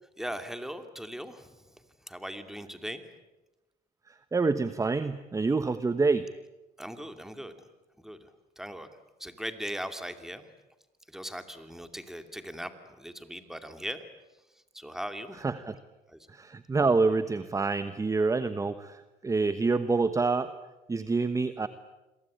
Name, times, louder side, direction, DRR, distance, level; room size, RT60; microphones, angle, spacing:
voice 1, 0.2-3.0 6.8-7.5 8.0-8.3 8.6-8.9 9.2-10.5 11.1-14.0 14.7-15.4 16.1-16.2, equal, ahead, 8 dB, 2.7 m, -39 dB
voice 2, 4.3-6.3 15.4-15.7 16.3-19.0 19.2-20.5 20.9-21.7, right 4 dB, 20° right, 12 dB, 1.1 m, -27 dB
29.0 x 22.5 x 8.7 m, 1.0 s
cardioid pair, 110°, 17 cm